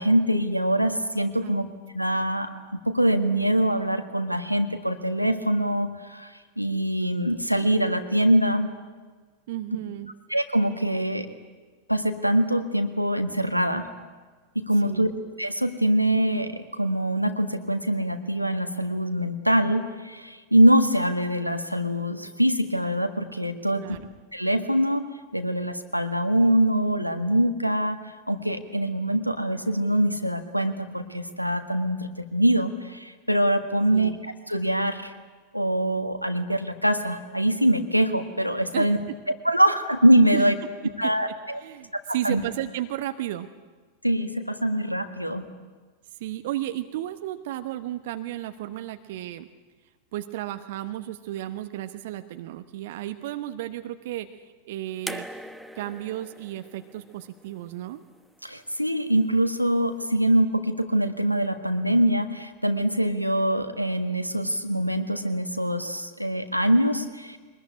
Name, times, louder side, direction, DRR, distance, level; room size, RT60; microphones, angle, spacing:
voice 1, 0.0-1.7 1.9-8.7 10.3-11.3 11.9-13.9 14.5-15.1 15.4-23.8 24.3-25.0 25.3-34.1 34.5-35.1 35.5-39.0 39.4-40.5 41.0-41.6 42.1-42.4 44.0-45.4 58.4-67.4, right 1 dB, 90° right, 7 dB, 1.6 m, -24 dB
voice 2, 9.5-10.1 14.8-15.1 23.7-24.1 33.9-34.2 38.7-38.9 40.3-40.4 41.0-41.1 41.6-43.5 46.2-49.5 50.1-55.3 55.7-58.0, right 14 dB, 55° right, 9 dB, 1.0 m, -33 dB
sound 1, 55.1-58.2 59.4-59.5, equal, ahead, 1.2 m, -41 dB
23.0 x 20.5 x 9.9 m, 1.4 s
figure-of-eight pair, 90°, 0 cm